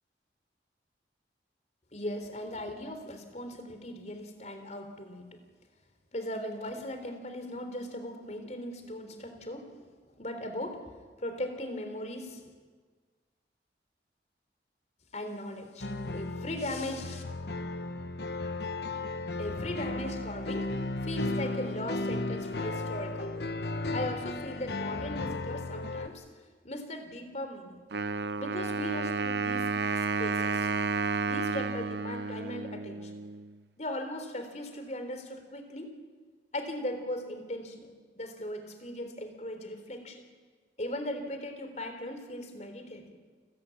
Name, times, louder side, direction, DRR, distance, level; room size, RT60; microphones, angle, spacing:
voice 1, 1.9-5.4 6.1-9.7 10.2-10.8 11.2-12.4 15.1-17.2 19.4-20.7 21.0-23.5 23.9-26.2 26.6-27.8 28.4-30.7 31.2-33.1 33.8-35.9 36.5-40.3 40.8-43.2, left 1 dB, 40° left, 7 dB, 3.6 m, -38 dB
sound 1, 15.8-26.1, left 2 dB, 65° left, 1.2 m, -35 dB
Wind instrument woodwind instrument, 27.9-33.5, right 4 dB, 70° right, 0.7 m, -31 dB
30.0 x 13.5 x 9.7 m, 1.5 s
head